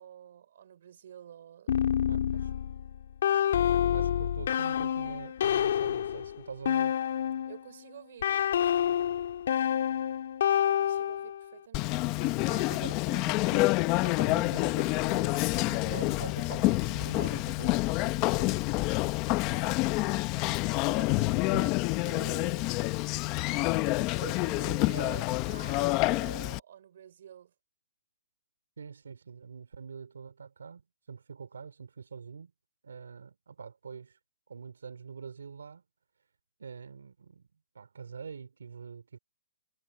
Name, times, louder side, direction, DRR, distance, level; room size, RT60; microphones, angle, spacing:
voice 1, 0.0-1.8 7.5-8.5 10.6-12.0 19.5-21.7 22.0-23.0 24.1-27.5, right 9 dB, 60° right, 6.3 m, -48 dB
sound 1, 1.7-7.6 8.2-11.4, left 9 dB, 60° left, 2.5 m, -28 dB
voice 2, 2.1-2.5 3.9-7.0 12.2-18.6 21.5-21.6 28.8-30.8 31.1-32.5 32.8-34.2 34.5-35.8 36.6-37.5 37.7-39.2, right 6 dB, 90° right, 4.5 m, -45 dB
Conversation, 11.7-26.6, left 21 dB, 25° left, 1.0 m, -28 dB
hypercardioid pair, 155°, 0 cm